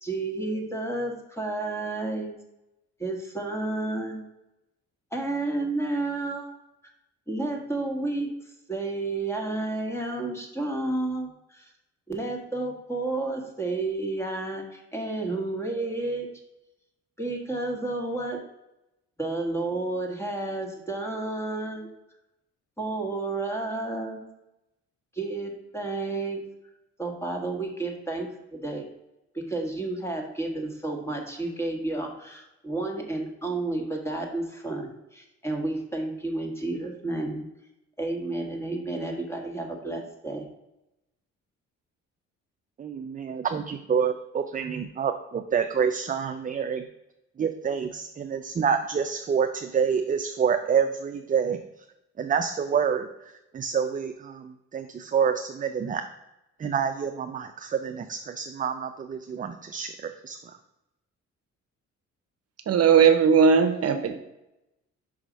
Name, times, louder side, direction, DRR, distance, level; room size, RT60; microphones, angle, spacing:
voice 1, 0.0-2.4 3.0-4.3 5.1-6.6 7.3-8.3 8.7-11.7 12.1-16.3 17.2-18.4 19.2-21.9 22.8-24.2 25.1-26.4 27.0-28.9 29.3-37.4 38.0-40.5, right 2 dB, 10° left, 1 dB, 1.6 m, -31 dB
voice 2, 42.8-46.8 47.4-51.6 52.2-53.1 53.5-56.0 56.6-60.4, right 7 dB, 25° right, 7 dB, 0.4 m, -27 dB
voice 3, 62.7-64.2, right 6 dB, 55° right, 7 dB, 0.8 m, -18 dB
5.4 x 4.9 x 5.1 m, 0.91 s
cardioid pair, 90°, 30 cm